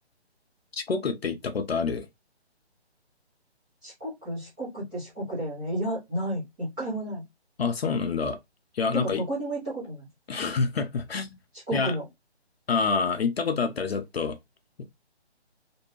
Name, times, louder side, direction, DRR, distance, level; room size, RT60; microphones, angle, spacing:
voice 1, 0.7-2.1 7.6-8.4 8.7-9.2 10.3-11.3 11.7-11.9 12.7-14.4, left 5 dB, 65° left, 0.6 m, -27 dB
voice 2, 3.8-7.2 8.9-10.1 11.7-12.0, right 1 dB, 10° right, 0.6 m, -32 dB
2.6 x 2.1 x 2.9 m
figure-of-eight pair, 145°, 34 cm